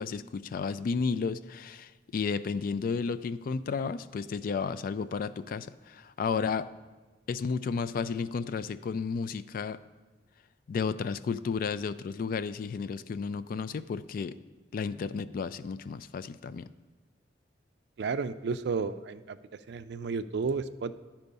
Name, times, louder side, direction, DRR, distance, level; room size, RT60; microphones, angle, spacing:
voice 1, 0.0-6.7 7.3-9.8 10.7-14.3 14.7-16.7, left 5 dB, 50° left, 15 dB, 0.3 m, -32 dB
voice 2, 18.0-19.4 19.7-20.9, right 4 dB, 65° right, 12 dB, 0.4 m, -32 dB
11.0 x 4.5 x 5.3 m, 1.3 s
head